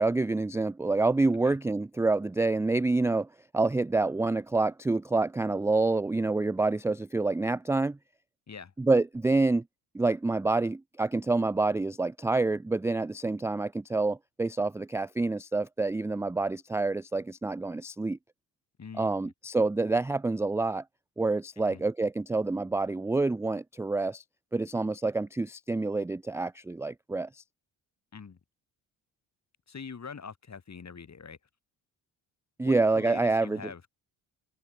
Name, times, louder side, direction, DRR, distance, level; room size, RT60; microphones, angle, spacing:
voice 1, 0.0-3.3 3.5-8.0 8.8-9.6 9.9-18.2 19.0-20.8 21.2-24.2 24.5-27.4 32.6-33.6, right 3 dB, 5° right, 0.4 m, -27 dB
voice 2, 18.8-19.3 21.6-21.8 28.1-28.4 29.7-31.4 32.6-33.9, left 6 dB, 35° left, 2.1 m, -44 dB
hypercardioid pair, 45°, 50 cm